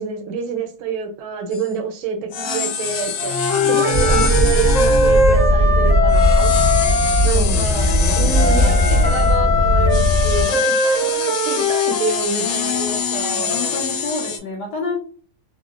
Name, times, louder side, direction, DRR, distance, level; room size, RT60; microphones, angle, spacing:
voice 1, 0.0-3.4 3.6-6.6 7.2-7.9 8.1-13.8, right 5 dB, 80° right, 5 dB, 1.4 m, -27 dB
sound 1, 1.5-1.7 2.3-5.5 6.1-9.4 9.9-14.4, left 7 dB, 90° left, 1.5 m, -26 dB
Wind instrument woodwind instrument, 3.2-7.3 8.3-12.2, left 2 dB, 25° left, 1.0 m, -20 dB
voice 2, 3.5-4.1 7.3-9.4 12.3-15.0, left 4 dB, 65° left, -1 dB, 1.2 m, -29 dB
sound 2, 3.9-10.5, left 1 dB, 45° right, 0.5 m, -17 dB
3.6 x 2.0 x 2.4 m, 0.41 s
omnidirectional pair, 2.3 m